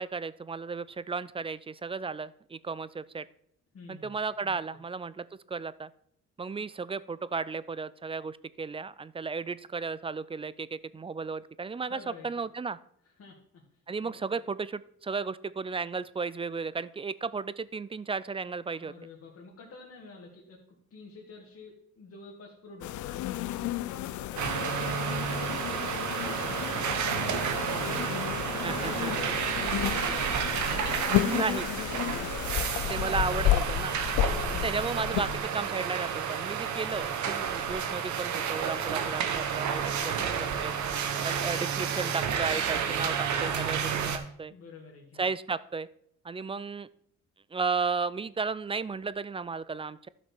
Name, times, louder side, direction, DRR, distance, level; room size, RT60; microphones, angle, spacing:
voice 1, 0.0-3.3 3.9-5.9 6.4-12.8 13.9-18.9 28.6-29.1 31.2-31.7 32.9-33.9 34.5-40.7 41.2-44.5 45.2-45.9 46.2-46.9 47.5-50.1, right 4 dB, 20° right, 17 dB, 0.3 m, -34 dB
voice 2, 3.7-4.1 4.4-4.6 11.9-12.3 13.2-13.6 14.0-14.4 18.7-29.9 34.4-34.8 36.9-37.1 39.0-39.1 39.6-40.2 44.5-45.3, left 3 dB, 50° left, -3 dB, 2.0 m, -49 dB
sound 1, 22.8-35.4, left 14 dB, 75° left, 0.5 m, -32 dB
sound 2, 24.4-44.2, right 7 dB, 70° right, 1.1 m, -31 dB
12.5 x 6.0 x 4.5 m, 0.68 s
cardioid pair, 90°, 30 cm